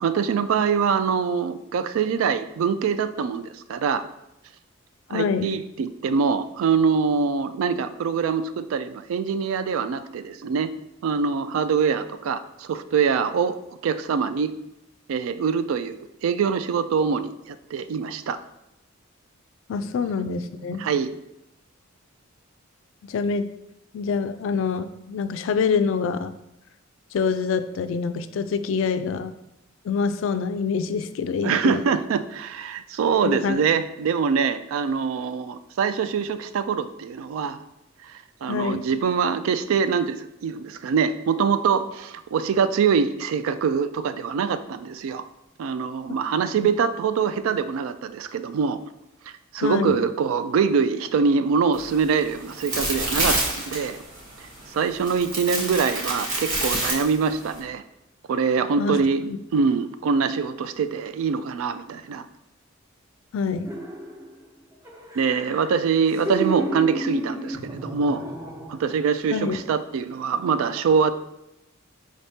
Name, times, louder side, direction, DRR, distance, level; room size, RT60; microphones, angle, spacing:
voice 1, 0.0-4.0 5.1-10.7 11.0-13.6 13.8-14.5 15.1-15.9 16.2-18.4 20.8-21.1 31.4-37.6 38.0-45.2 45.6-48.8 49.5-54.0 54.7-57.8 58.3-59.2 59.5-62.2 65.2-68.2 68.7-71.1, right 6 dB, 80° right, 12 dB, 0.3 m, -24 dB
voice 2, 5.1-5.6 19.7-20.8 23.0-23.4 23.9-26.3 27.1-29.3 29.8-31.8 33.2-33.6 38.5-38.9 49.6-50.0 55.6-55.7 58.8-59.4 63.3-63.7 69.3-69.6, left 5 dB, 65° left, 11 dB, 0.3 m, -26 dB
sound 1, 51.7-57.6, right 1 dB, 40° right, 1.2 m, -28 dB
sound 2, 63.6-64.5 64.9-69.0 69.4-69.6, right 1 dB, 15° right, 0.5 m, -32 dB
4.9 x 3.5 x 2.7 m, 0.85 s
head